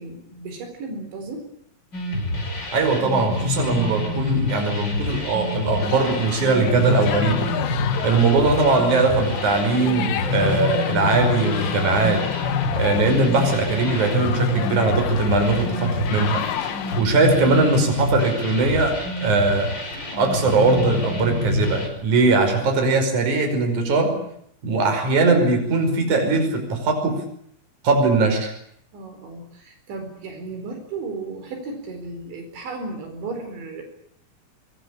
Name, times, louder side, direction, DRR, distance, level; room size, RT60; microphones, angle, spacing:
voice 1, 0.0-1.5 13.3-13.6 28.9-33.8, right 3 dB, 70° right, 5 dB, 6.7 m, -34 dB
sound 1, 1.9-21.9, left 3 dB, 20° left, 5.9 m, -27 dB
voice 2, 2.7-12.3 12.7-19.7 20.1-24.2 24.6-27.2 27.8-28.5, right 3 dB, 40° right, 5 dB, 6.4 m, -20 dB
sound 2, 5.8-17.0, left 11 dB, 85° left, 4.0 m, -31 dB
Bass guitar, 10.4-16.6, left 17 dB, 60° left, 2.1 m, -34 dB
25.0 x 22.0 x 8.7 m, 0.70 s
omnidirectional pair, 5.5 m